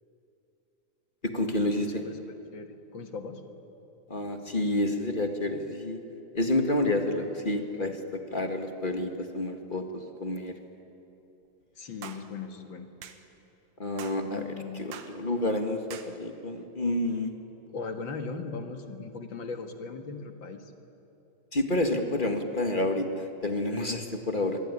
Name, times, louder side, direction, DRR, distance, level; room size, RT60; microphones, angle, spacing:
voice 1, 1.2-2.1 4.1-6.0 6.3-10.6 13.8-17.3 21.5-24.6, left 1 dB, 30° left, 5 dB, 0.9 m, -29 dB
voice 2, 1.8-3.4 11.8-12.9 14.2-14.9 17.7-20.7, left 4 dB, 45° left, 6 dB, 1.9 m, -39 dB
sound 1, 12.0-12.2 13.0-13.2 14.0-14.2 14.9-15.1 15.9-16.1, right 9 dB, 75° right, 2.9 m, -43 dB
26.5 x 22.0 x 9.8 m, 2.9 s
omnidirectional pair, 3.8 m